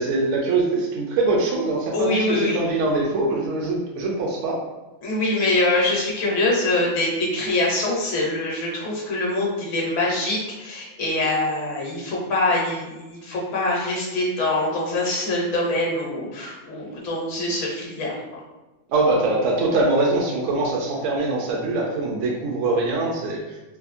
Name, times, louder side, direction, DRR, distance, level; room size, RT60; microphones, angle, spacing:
voice 1, 0.0-4.6 18.9-23.4, right 2 dB, 75° right, -2 dB, 0.9 m, -23 dB
voice 2, 1.9-2.6 5.0-18.4, left 2 dB, 70° left, -3 dB, 1.2 m, -24 dB
3.5 x 2.7 x 2.5 m, 1.1 s
omnidirectional pair, 1.3 m